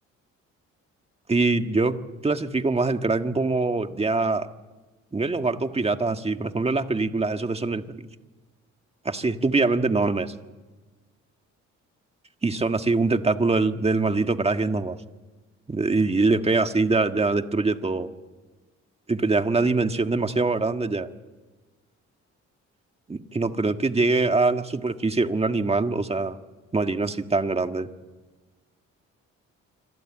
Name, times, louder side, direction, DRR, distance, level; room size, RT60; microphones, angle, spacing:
voice 1, 1.3-2.0 2.2-4.5 5.1-8.0 9.0-10.3 12.4-15.0 15.7-18.1 19.1-21.1 23.1-26.4 26.7-27.9, right 3 dB, 20° right, 8 dB, 1.6 m, -23 dB
26.0 x 25.5 x 8.8 m, 1.2 s
cardioid pair, 90°, 30 cm